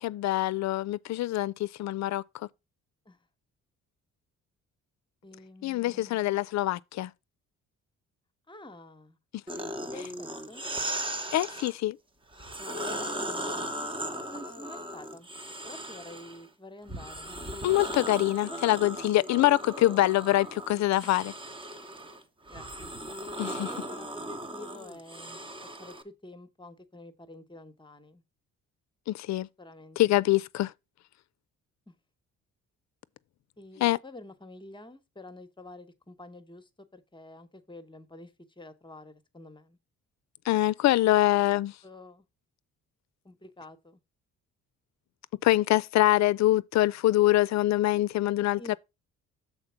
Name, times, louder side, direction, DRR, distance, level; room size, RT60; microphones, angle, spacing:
voice 1, 0.0-2.2 5.6-7.1 11.3-12.0 17.6-21.3 23.4-23.7 29.1-29.5 30.0-30.7 33.8-34.0 40.5-41.7 45.4-48.8, left 15 dB, 65° left, 0.5 m, -24 dB
voice 2, 5.2-6.4 8.5-9.2 9.8-10.6 12.7-15.3 15.6-17.3 18.4-18.8 19.3-20.0 21.0-21.2 22.1-22.2 22.5-22.7 23.2-25.4 25.8-28.2 29.6-30.2 31.9-32.0 33.6-39.8 41.8-42.2 43.2-44.0 48.6-48.8, left 1 dB, 15° left, 1.0 m, -48 dB
sound 1, 9.5-11.7 12.3-16.4 16.9-26.0, right 1 dB, 15° right, 1.0 m, -37 dB
6.7 x 4.2 x 5.7 m
cardioid pair, 90°, 30 cm